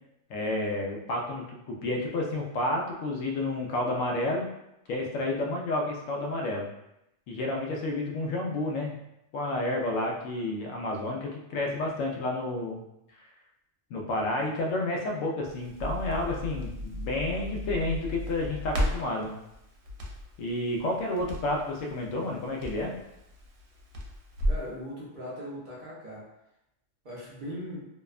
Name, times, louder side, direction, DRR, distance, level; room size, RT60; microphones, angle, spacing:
voice 1, 0.3-4.5 4.9-6.7 7.3-8.9 9.3-12.8 13.9-19.3 20.4-22.9, left 2 dB, 85° left, 0 dB, 0.9 m, -30 dB
Crackle, 15.4-24.7, equal, 80° right, 0.9 m, -35 dB
voice 2, 24.4-26.3 27.0-27.9, equal, 55° right, -6 dB, 0.6 m, -39 dB
2.7 x 2.1 x 2.3 m, 0.85 s
omnidirectional pair, 1.3 m